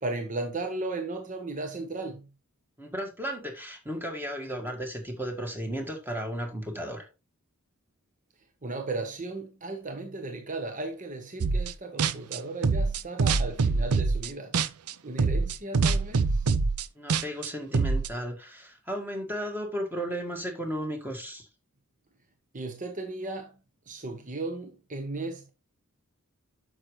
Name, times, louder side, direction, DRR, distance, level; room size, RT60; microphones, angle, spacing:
voice 1, 0.0-2.3 8.6-14.6 15.0-16.5 22.5-23.5 23.9-25.5, right 2 dB, 35° right, 0.9 m, -35 dB
voice 2, 2.8-7.1 17.0-21.5, equal, 10° right, 1.8 m, -34 dB
sound 1, 11.4-11.7 12.0-14.9 15.2-18.1, right 4 dB, 85° right, 0.6 m, -25 dB
8.8 x 6.4 x 3.1 m
head